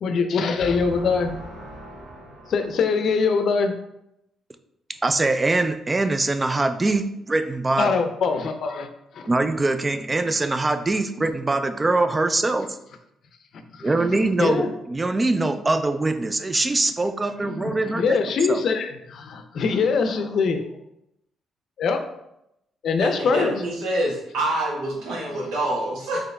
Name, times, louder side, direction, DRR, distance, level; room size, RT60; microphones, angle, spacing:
voice 1, 0.0-1.3 2.5-3.7 7.8-8.9 9.1-9.3 13.7-14.7 17.4-20.8 21.8-22.0 22.8-23.5, left 5 dB, 65° left, 7 dB, 0.5 m, -23 dB
voice 2, 0.7-1.2 1.5-2.5 23.0-26.2, right 1 dB, 85° right, -3 dB, 1.2 m, -28 dB
voice 3, 5.0-7.9 9.3-12.7 13.8-18.2 18.5-18.6, right 2 dB, 25° right, 9 dB, 0.3 m, -23 dB
4.0 x 3.0 x 3.3 m, 0.82 s
cardioid pair, 90°, 0 cm